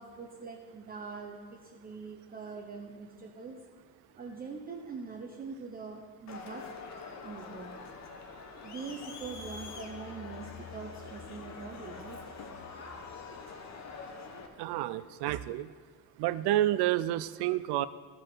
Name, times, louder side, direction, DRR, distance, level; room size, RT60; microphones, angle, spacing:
voice 1, 0.0-3.6 4.1-6.6 7.2-7.8 8.6-12.2, right 5 dB, 25° right, 1 dB, 0.6 m, -43 dB
Crowd, 6.3-14.5, left 5 dB, 45° left, 0.9 m, -45 dB
voice 2, 14.6-15.7 16.2-17.9, right 14 dB, 80° right, 16 dB, 0.5 m, -29 dB
14.5 x 4.9 x 4.5 m, 1.5 s
cardioid pair, 155°, 39 cm